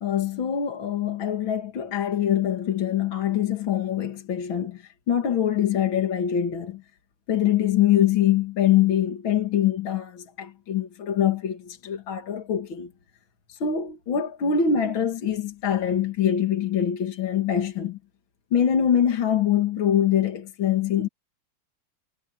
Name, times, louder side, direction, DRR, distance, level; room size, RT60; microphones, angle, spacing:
voice 1, 0.0-6.8 7.3-12.9 13.5-18.0 18.5-21.1, left 9 dB, 65° left, 2.7 m, -24 dB
omnidirectional pair, 2.4 m